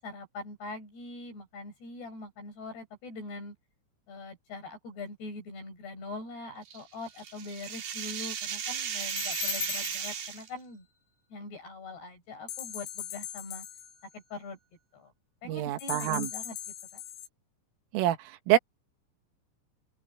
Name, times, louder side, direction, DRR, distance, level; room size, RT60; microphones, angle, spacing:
voice 1, 0.0-3.5 4.1-10.9 11.3-13.6 14.1-14.6 14.9-15.1 15.4-16.6 16.9-17.0, left 3 dB, 50° left, 8.5 m, -42 dB
sound 1, 6.7-10.5, right 8 dB, 50° right, 3.8 m, -36 dB
sound 2, 9.0-10.4 12.5-14.2 15.8-17.3, left 9 dB, 70° left, 9.1 m, -38 dB
voice 2, 15.5-16.3 17.9-18.2 18.5-18.6, right 13 dB, 75° right, 4.1 m, -25 dB
open air
omnidirectional pair, 5.9 m